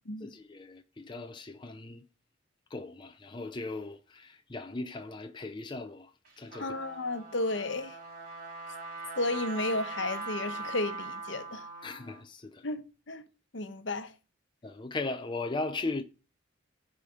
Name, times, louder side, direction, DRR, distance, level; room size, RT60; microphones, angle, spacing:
voice 1, 0.2-2.0 2.7-6.1 6.4-6.7 11.8-12.6 14.6-16.0, left 3 dB, 25° left, 0.5 m, -38 dB
Trumpet, 6.2-12.2, right 3 dB, 45° right, 3.1 m, -41 dB
voice 2, 6.6-8.0 9.2-11.6 12.6-13.2 13.5-14.1, left 2 dB, 65° left, 1.0 m, -33 dB
8.5 x 5.0 x 7.0 m
head